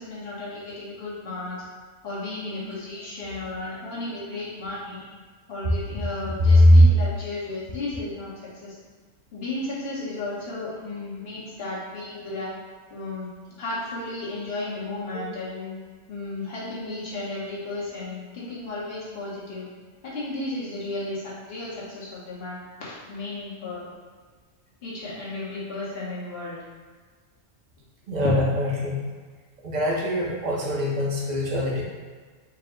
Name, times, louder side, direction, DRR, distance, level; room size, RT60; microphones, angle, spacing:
voice 1, 0.0-1.6 2.0-5.1 5.5-8.3 8.6-8.8 9.3-12.5 12.9-13.3 13.6-15.7 16.1-19.7 20.0-23.8 24.8-26.6 28.2-28.3, left 2 dB, 55° left, -7 dB, 1.3 m, -34 dB
voice 2, 6.4-6.8 15.1-15.2 28.1-29.0 29.6-31.8, left 1 dB, 45° right, -3 dB, 0.7 m, -20 dB
4.7 x 2.0 x 3.6 m, 1.5 s
omnidirectional pair, 1.2 m